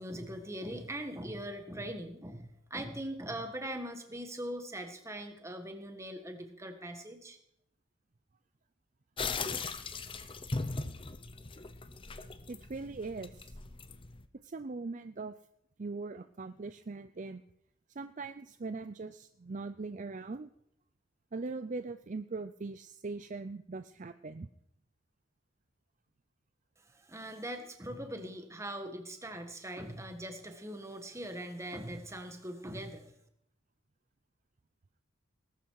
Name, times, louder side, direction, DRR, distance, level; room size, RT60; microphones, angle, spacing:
voice 1, 0.0-7.4 26.9-33.1, right 1 dB, 15° right, 6 dB, 1.6 m, -41 dB
sound 1, 9.2-14.2, left 4 dB, 25° left, 0.7 m, -39 dB
voice 2, 12.5-13.6 14.4-15.3 15.8-17.4 17.9-20.5 21.3-24.5, right 3 dB, 35° right, 11 dB, 0.5 m, -41 dB
19.5 x 12.0 x 4.8 m, 0.75 s
head